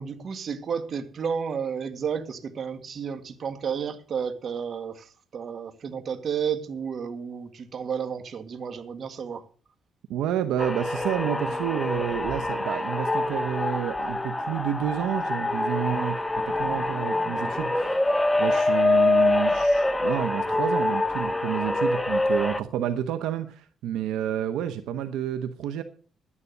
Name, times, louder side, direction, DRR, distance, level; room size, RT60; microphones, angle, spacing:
voice 1, 0.0-9.4, right 7 dB, 50° right, 1.8 m, -32 dB
voice 2, 10.1-16.2 16.4-25.8, right 10 dB, 90° right, 0.9 m, -30 dB
sound 1, 10.6-22.6, left 2 dB, 10° left, 0.9 m, -25 dB
11.0 x 9.8 x 6.7 m
cardioid pair, 90°, 0 cm